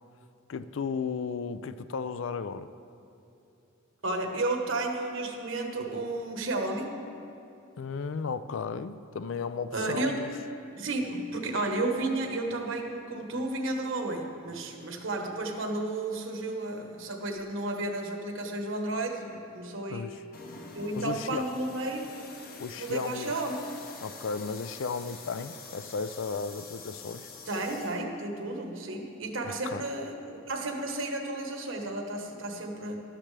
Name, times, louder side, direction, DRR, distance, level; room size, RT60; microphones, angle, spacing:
voice 1, 0.5-2.7 7.8-10.3 19.9-20.1 20.9-21.5 22.6-23.3 24.0-27.3 29.5-29.8, left 5 dB, 65° left, 13 dB, 0.4 m, -34 dB
voice 2, 4.0-6.9 9.7-10.2 10.8-20.1 20.7-22.0 22.7-23.6 27.5-33.0, right 2 dB, 65° right, 3 dB, 1.3 m, -32 dB
sound 1, 20.3-28.0, left 4 dB, 45° left, 0.9 m, -46 dB
13.5 x 12.0 x 3.3 m, 2.8 s
head